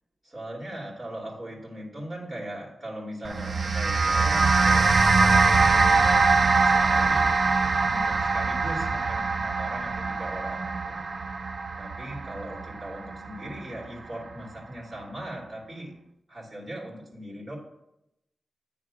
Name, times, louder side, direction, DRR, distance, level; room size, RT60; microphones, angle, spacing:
voice 1, 0.2-7.3 7.8-11.0 11.8-16.0 16.3-17.6, right 1 dB, 30° right, -3 dB, 2.7 m, -39 dB
sound 1, 3.2-13.8, right 4 dB, 45° right, 0.4 m, -23 dB
9.2 x 3.5 x 6.1 m, 0.84 s
wide cardioid pair, 125°, 0 cm